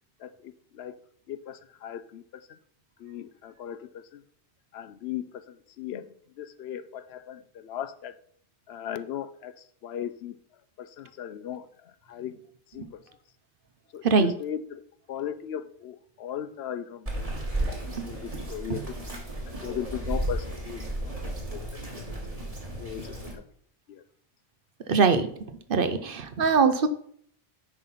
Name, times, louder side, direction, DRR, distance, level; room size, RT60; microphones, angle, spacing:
voice 1, 0.2-1.0 1.3-2.6 3.0-4.2 4.7-8.1 8.7-9.5 9.8-10.4 10.8-12.4 12.7-13.2 13.9-14.8 15.1-17.2 17.8-19.0 19.5-20.8 21.2-21.9 22.8-23.4 23.9-24.0, left 10 dB, 75° left, 14 dB, 0.8 m, -38 dB
Bird vocalization bird call bird song, 17.1-23.3, right 1 dB, 35° right, 1.9 m, -34 dB
voice 2, 24.9-25.3 25.7-26.9, right 5 dB, 60° right, 10 dB, 0.9 m, -22 dB
9.8 x 4.0 x 5.6 m, 0.64 s
omnidirectional pair, 1.1 m